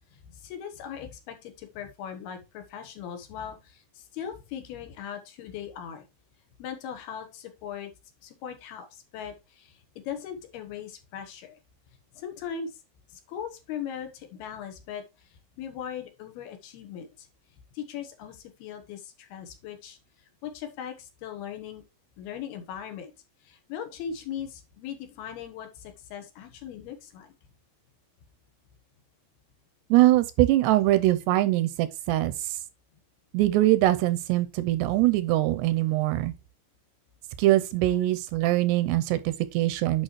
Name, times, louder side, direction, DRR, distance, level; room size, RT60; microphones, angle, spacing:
voice 1, 0.1-6.0 6.6-7.9 8.2-11.6 12.2-12.8 13.1-17.3 17.7-20.0 20.4-21.8 22.2-23.1 23.4-27.3, left 8 dB, 70° left, 3.0 m, -39 dB
voice 2, 29.9-32.3 33.3-36.3 37.4-40.0, right 16 dB, 85° right, 2.6 m, -22 dB
8.9 x 6.0 x 3.0 m
omnidirectional pair, 5.0 m